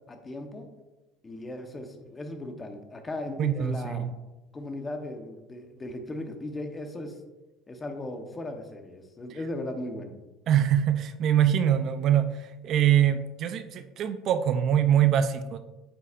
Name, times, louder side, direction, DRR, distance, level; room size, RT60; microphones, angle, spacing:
voice 1, 0.1-0.7 1.2-4.1 4.5-7.1 7.7-10.1, left 1 dB, 20° left, 5 dB, 1.0 m, -37 dB
voice 2, 3.4-4.1 10.5-15.6, right 10 dB, 50° right, 10 dB, 0.5 m, -24 dB
8.9 x 7.0 x 2.5 m, 1.1 s
cardioid pair, 130°, 0 cm